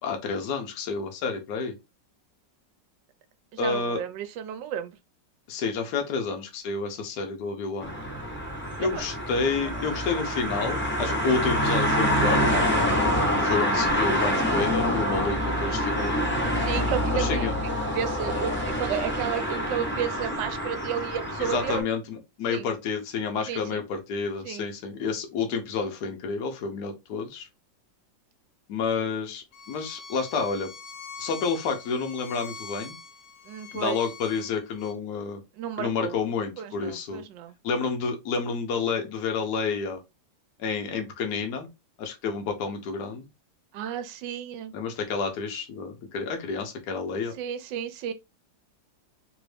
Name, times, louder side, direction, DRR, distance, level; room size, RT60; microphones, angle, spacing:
voice 1, 0.0-1.8 3.6-4.0 5.5-7.9 8.8-12.7 13.0-13.1 13.4-16.3 17.1-17.5 21.4-27.5 28.7-30.7 31.2-33.0 33.7-35.4 35.8-37.2 37.6-40.0 40.6-41.7 42.0-43.3 44.7-47.3, left 5 dB, 65° left, 1.3 m, -29 dB
voice 2, 3.5-5.0 8.8-9.0 16.6-17.5 17.9-21.8 22.5-22.7 23.5-23.8 24.4-24.6 33.5-34.0 35.6-36.1 36.6-37.6 43.7-44.7 47.4-48.1, right 9 dB, 75° right, 1.2 m, -32 dB
sound 1, 7.8-21.8, equal, 10° left, 0.7 m, -26 dB
Bowed string instrument, 29.5-34.9, left 4 dB, 85° left, 0.6 m, -44 dB
3.4 x 2.6 x 3.2 m
omnidirectional pair, 2.0 m